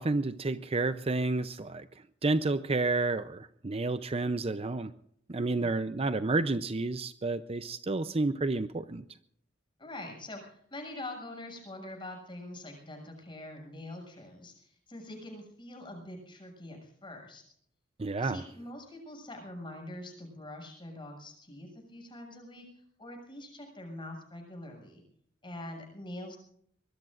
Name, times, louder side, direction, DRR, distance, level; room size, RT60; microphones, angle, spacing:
voice 1, 0.0-1.9 2.2-4.9 5.3-9.0 18.0-18.4, right 3 dB, 30° right, 11 dB, 0.6 m, -30 dB
voice 2, 9.8-17.4 18.2-22.7 23.0-25.0 25.4-26.4, left 1 dB, 25° left, 1 dB, 7.0 m, -44 dB
24.0 x 21.5 x 2.6 m, 0.65 s
head